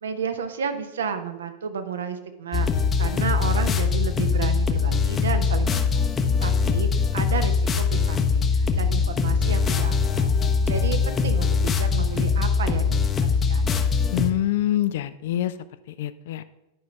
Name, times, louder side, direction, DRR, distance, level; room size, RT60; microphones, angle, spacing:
voice 1, 0.0-6.1 6.4-10.3 10.7-13.7, right 6 dB, 65° right, 8 dB, 0.9 m, -32 dB
sound 1, 2.5-14.3, left 5 dB, 20° left, 0.7 m, -22 dB
sound 2, 5.7-5.9 6.6-6.9 7.4-7.7 8.1-8.4 8.7-9.0 9.3-10.4 10.7-11.1, right 1 dB, 45° right, 2.0 m, -37 dB
voice 2, 14.1-15.6 15.9-16.4, left 13 dB, 55° left, 13 dB, 0.4 m, -25 dB
9.8 x 5.2 x 5.6 m, 0.96 s
figure-of-eight pair, 90°, 0 cm